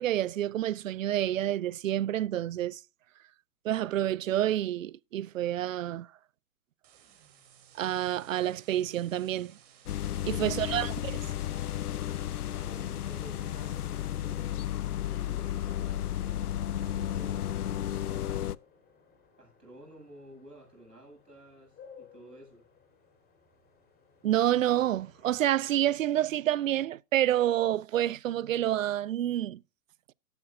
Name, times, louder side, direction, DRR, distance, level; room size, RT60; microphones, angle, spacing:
voice 1, 0.0-2.8 3.6-6.1 7.8-9.5 10.3-11.2 24.2-29.6, right 12 dB, 60° right, 0.5 m, -28 dB
sound 1, 6.8-15.1, right 9 dB, 40° right, 3.3 m, -61 dB
sound 2, 9.9-18.6, left 11 dB, 70° left, 0.6 m, -33 dB
sound 3, 11.3-25.9, left 6 dB, 20° left, 4.0 m, -60 dB
voice 2, 12.4-14.4 15.0-16.4 16.7-18.5 19.4-22.6, right 1 dB, 85° right, 8.0 m, -53 dB
14.0 x 12.5 x 2.6 m
figure-of-eight pair, 120°, 47 cm